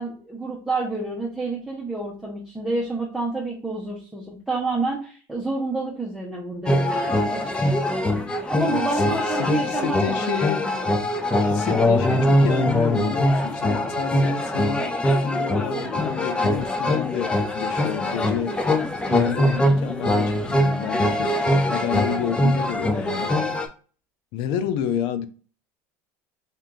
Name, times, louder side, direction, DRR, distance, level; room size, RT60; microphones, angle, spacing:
voice 1, 0.0-8.0 8.5-10.9, right 3 dB, 5° right, 0.9 m, -29 dB
sound 1, 6.7-23.7, left 1 dB, 10° left, 0.5 m, -22 dB
voice 2, 8.7-9.1 9.4-10.7 11.4-18.6 19.1-23.4 24.3-25.3, left 8 dB, 65° left, 0.6 m, -30 dB
3.6 x 2.7 x 3.7 m
supercardioid pair, 130°, 8 cm